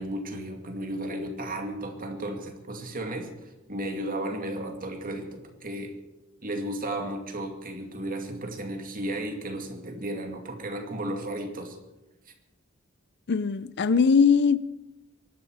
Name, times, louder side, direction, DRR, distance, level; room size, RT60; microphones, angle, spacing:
voice 1, 0.0-5.9 6.4-11.8, right 1 dB, 40° right, 2.2 m, -34 dB
voice 2, 13.3-14.6, left 5 dB, 55° left, 0.5 m, -20 dB
23.5 x 12.0 x 4.8 m
head